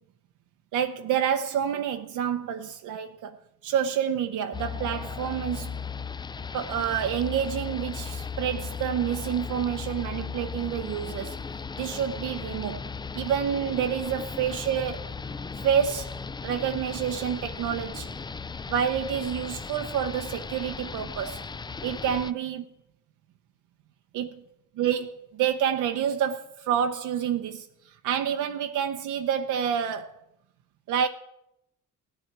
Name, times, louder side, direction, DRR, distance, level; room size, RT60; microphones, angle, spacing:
voice 1, 0.7-3.4 3.6-5.8 6.5-11.4 11.8-12.8 13.1-15.0 15.6-16.1 16.4-18.1 18.7-21.4 21.8-22.6 24.1-24.4 24.8-27.7 28.0-30.1 30.9-31.1, right 8 dB, 80° right, 0.7 m, -28 dB
sound 1, 4.5-22.3, left 5 dB, 15° left, 0.3 m, -36 dB
16.5 x 9.2 x 4.6 m
cardioid pair, 90°, 30 cm